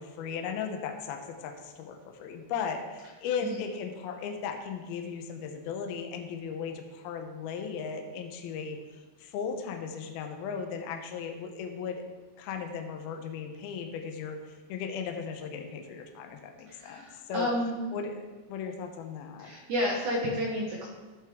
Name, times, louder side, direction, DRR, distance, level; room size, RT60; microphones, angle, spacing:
voice 1, 0.0-8.8 9.2-12.0 12.4-17.5 17.9-18.2 18.5-19.5, left 6 dB, 85° left, 4 dB, 2.2 m, -36 dB
voice 2, 16.7-17.8 19.4-20.9, equal, 75° right, -3 dB, 1.7 m, -31 dB
14.5 x 7.7 x 3.7 m, 1.3 s
omnidirectional pair, 5.6 m